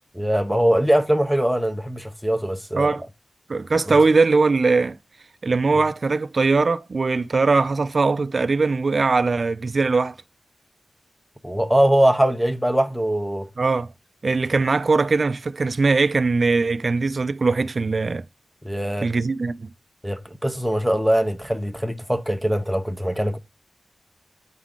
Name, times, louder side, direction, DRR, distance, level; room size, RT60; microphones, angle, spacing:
voice 1, 0.1-3.0 3.7-4.0 5.7-5.8 11.4-13.5 18.6-19.1 20.0-23.4, right 1 dB, 5° right, 0.8 m, -22 dB
voice 2, 3.5-5.0 5.4-10.2 13.6-13.9 14.2-18.2 19.0-19.7, right 4 dB, 50° right, 0.4 m, -20 dB
8.1 x 3.8 x 3.7 m
wide cardioid pair, 110°, 0 cm